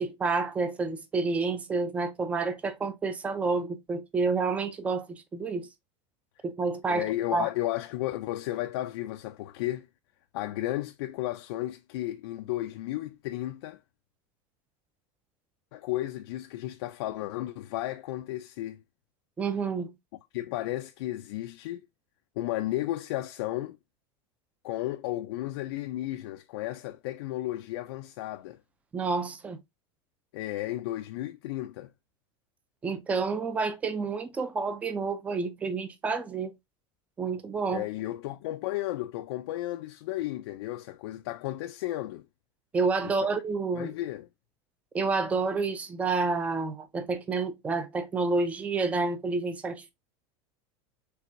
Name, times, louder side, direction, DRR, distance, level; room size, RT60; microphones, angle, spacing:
voice 1, 0.0-5.7 6.4-7.0 7.3-7.5 19.4-19.9 28.9-29.6 32.8-36.5 37.2-37.8 42.7-43.9 44.9-49.9, right 4 dB, 10° right, 0.4 m, -29 dB
voice 2, 6.9-9.9 10.3-13.8 15.7-18.8 20.3-21.8 22.4-23.8 24.6-28.6 30.3-31.9 37.7-42.2 43.0-43.3 43.7-44.3, left 15 dB, 75° left, 0.4 m, -33 dB
4.6 x 3.3 x 2.6 m
supercardioid pair, 170°, 14 cm